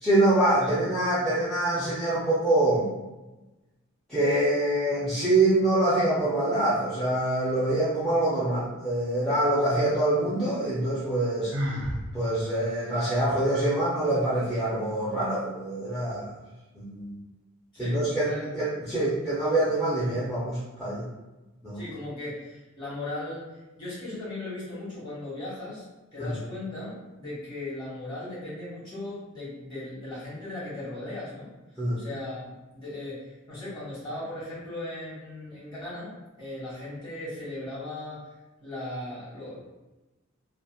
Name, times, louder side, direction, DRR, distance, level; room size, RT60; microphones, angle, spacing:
voice 1, 0.0-2.9 4.1-11.5 12.1-16.3 16.7-17.2 17.8-21.0 21.6-21.8 26.2-26.3 31.8-32.0, right 1 dB, 5° left, -11 dB, 0.5 m, -25 dB
Sigh, 11.5-12.0, equal, 60° right, 0.5 m, -29 dB
voice 2, 17.7-18.5 19.2-19.3 21.7-23.5 23.8-25.8 26.1-31.5 32.0-32.5 32.7-36.1 36.4-38.2 38.6-39.6, left 2 dB, 25° left, -9 dB, 1.2 m, -37 dB
2.7 x 2.0 x 2.3 m, 1.1 s
head